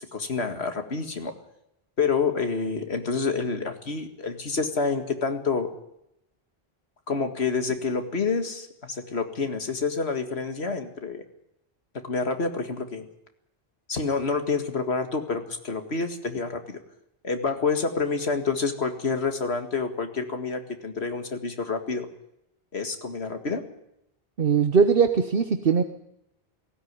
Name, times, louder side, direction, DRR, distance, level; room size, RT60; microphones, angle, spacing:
voice 1, 0.1-1.3 2.0-5.7 7.1-11.2 12.0-13.1 13.9-16.8 17.2-22.1 22.7-23.6, left 4 dB, 85° left, 6 dB, 2.2 m, -28 dB
voice 2, 24.4-25.8, right 6 dB, 60° right, 8 dB, 1.2 m, -20 dB
18.0 x 16.5 x 9.6 m, 0.81 s
omnidirectional pair, 1.1 m